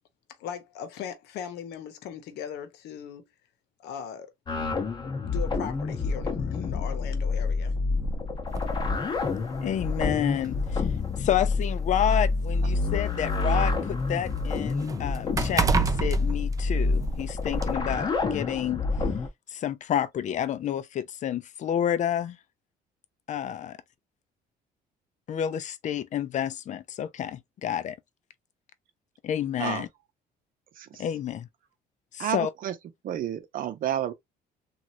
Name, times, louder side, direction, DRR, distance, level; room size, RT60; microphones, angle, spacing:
voice 1, 0.4-3.2 3.8-4.3 5.2-7.7, left 8 dB, 80° left, 0.9 m, -38 dB
sound 1, 4.5-19.3, left 3 dB, 25° left, 0.8 m, -28 dB
sound 2, 8.6-8.7 9.8-9.9 10.3-10.5 11.4-13.4 13.8-17.2 17.6-17.7, right 5 dB, 20° right, 0.4 m, -29 dB
voice 2, 9.6-10.9 11.2-18.8 19.5-22.4 23.3-23.8 25.3-28.0 29.2-29.9 31.0-31.5 32.1-32.5, left 10 dB, 45° left, 0.5 m, -29 dB
voice 3, 32.2-32.7 33.0-34.1, right 11 dB, 55° right, 0.7 m, -30 dB
3.0 x 2.4 x 2.6 m
cardioid pair, 110°, 17 cm